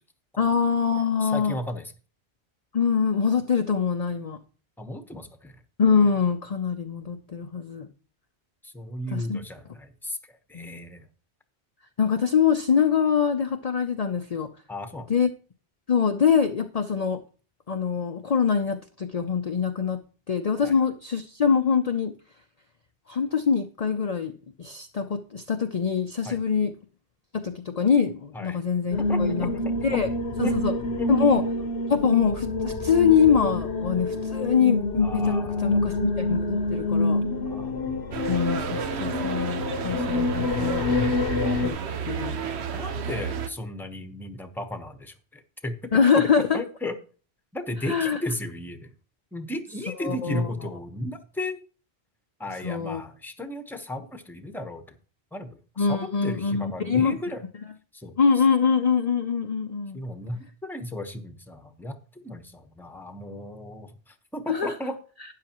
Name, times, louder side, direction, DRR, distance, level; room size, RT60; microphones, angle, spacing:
voice 1, 0.4-1.6 2.7-4.4 5.8-7.9 9.1-9.4 10.5-11.0 12.0-14.5 15.1-15.3 15.9-17.2 17.7-20.0 20.3-22.1 23.1-24.3 24.6-26.7 27.3-29.5 29.8-30.1 30.4-30.7 31.1-31.4 31.9-35.4 35.6-37.2 38.3-40.9 41.6-41.8 42.1-42.4 45.9-46.6 47.9-48.2 50.0-50.5 52.6-53.0 55.8-57.2 58.2-60.0 64.5-64.7, left 6 dB, 45° left, 6 dB, 0.6 m, -24 dB
voice 2, 1.2-1.9 4.8-5.6 8.6-11.1 14.7-15.1 20.6-20.7 26.2-26.4 28.3-28.6 29.0-29.7 30.4-30.5 31.0-31.1 35.0-35.8 37.4-37.7 42.7-46.0 46.5-46.9 47.5-48.9 49.3-51.6 52.4-54.8 55.3-57.4 57.9-58.2 59.9-65.0, left 1 dB, ahead, 7 dB, 0.9 m, -35 dB
sound 1, 28.9-41.7, left 2 dB, 80° left, 1.3 m, -27 dB
sound 2, 38.1-43.5, right 7 dB, 80° right, 1.1 m, -32 dB
12.5 x 9.4 x 3.0 m, 0.38 s
omnidirectional pair, 1.1 m